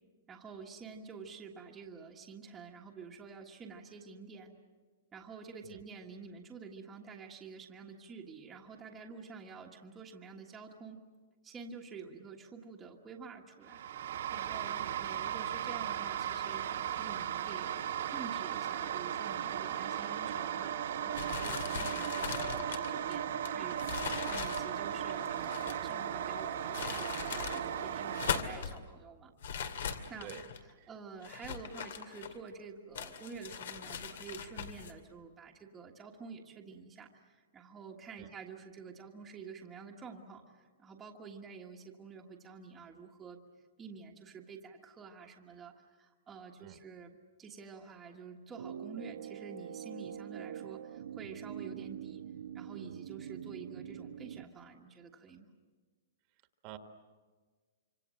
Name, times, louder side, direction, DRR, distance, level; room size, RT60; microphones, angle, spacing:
voice 1, 0.3-4.5 5.1-11.0 11.4-14.0 14.3-23.9 24.3-29.3 30.1-30.3 30.9-43.4 43.8-52.2 52.5-55.5, right 5 dB, 10° right, -1 dB, 1.5 m, -49 dB
voice 2, 5.6-5.8 14.7-14.9 30.2-30.4 30.8-30.9 38.2-38.3 46.6-46.8 56.6-56.8, right 13 dB, 30° right, 7 dB, 1.6 m, -48 dB
sound 1, 13.7-28.4, right 9 dB, 65° right, 1.6 m, -36 dB
sound 2, 21.1-25.9 26.5-27.6 28.0-28.8 29.4-30.6 31.2-32.5 32.9-34.9, left 7 dB, 70° left, 2.3 m, -40 dB
sound 3, 48.6-54.4, right 9 dB, 80° right, 1.1 m, -44 dB
26.0 x 25.5 x 7.7 m, 1.5 s
hypercardioid pair, 170°, 0 cm